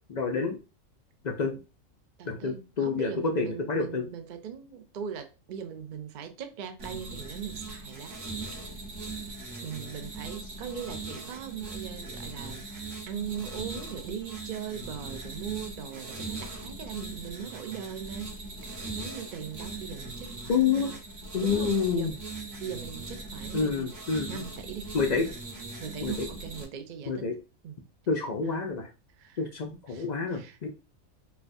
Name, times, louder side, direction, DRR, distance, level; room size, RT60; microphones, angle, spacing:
voice 1, 0.1-0.6 1.2-1.5 2.3-4.1 20.5-20.9 21.3-22.1 23.5-24.4 24.9-25.3 26.0-26.3 27.1-27.4 28.1-28.9 29.4-30.7, left 5 dB, 65° left, 0.4 m, -28 dB
voice 2, 2.2-8.1 8.6-8.7 9.6-21.0 21.4-22.2 22.6-23.9 24.3-24.9 25.2-25.3 25.8-27.3 27.6-27.8 28.4-28.6 29.2-29.4 29.9-30.7, right 8 dB, 65° right, 0.4 m, -40 dB
sound 1, 6.8-26.6, right 3 dB, 40° right, 0.9 m, -40 dB
4.4 x 2.3 x 2.6 m
omnidirectional pair, 1.4 m